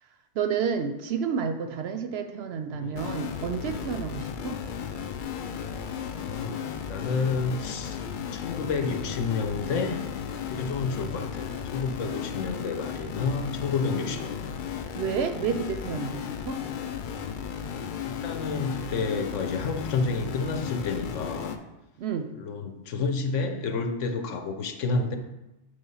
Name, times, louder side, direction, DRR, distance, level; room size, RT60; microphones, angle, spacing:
voice 1, 0.4-4.6 14.9-16.6 22.0-22.3, right 6 dB, 65° right, 7 dB, 0.7 m, -30 dB
voice 2, 2.7-3.1 6.1-8.0 8.3-10.0 10.4-14.5 18.0-21.6 22.3-25.2, left 4 dB, 80° left, 6 dB, 1.1 m, -30 dB
sound 1, 2.9-21.6, left 7 dB, 60° left, 0.5 m, -35 dB
7.1 x 3.3 x 5.5 m, 0.95 s
omnidirectional pair, 1.3 m